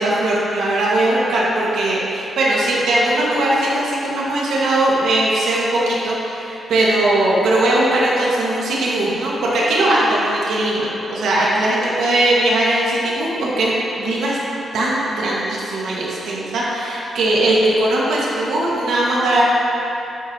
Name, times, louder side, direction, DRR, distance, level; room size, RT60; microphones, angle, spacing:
voice 1, 0.0-14.4 14.7-19.4, right 1 dB, 80° right, -6 dB, 1.7 m, -19 dB
9.9 x 7.8 x 2.9 m, 3.0 s
cardioid pair, 115°, 0 cm